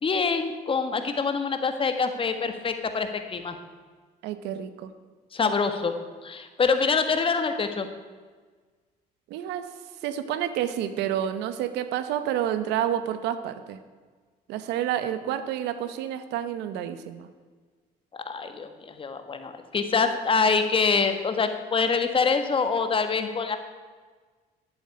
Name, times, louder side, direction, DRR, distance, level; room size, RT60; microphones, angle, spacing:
voice 1, 0.0-3.6 5.3-5.9 6.2-7.9 18.2-23.6, left 5 dB, 30° left, 7 dB, 1.5 m, -25 dB
voice 2, 4.2-4.9 9.3-9.7 10.0-13.8 14.5-17.3, right 10 dB, 90° right, 11 dB, 1.1 m, -29 dB
11.5 x 8.1 x 9.7 m, 1.5 s
cardioid pair, 110°, 17 cm